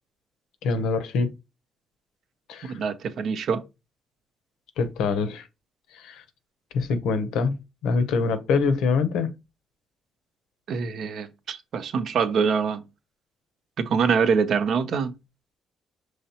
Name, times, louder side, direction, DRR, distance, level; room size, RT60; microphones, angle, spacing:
voice 1, 0.6-1.3 2.5-2.8 4.8-5.5 5.9-6.2 6.7-7.6 7.8-9.3, left 4 dB, 90° left, 0.7 m, -24 dB
voice 2, 2.6-3.6 10.7-12.8 13.8-15.1, right 6 dB, 65° right, 0.6 m, -24 dB
5.7 x 3.2 x 2.8 m
cardioid pair, 90°, 0 cm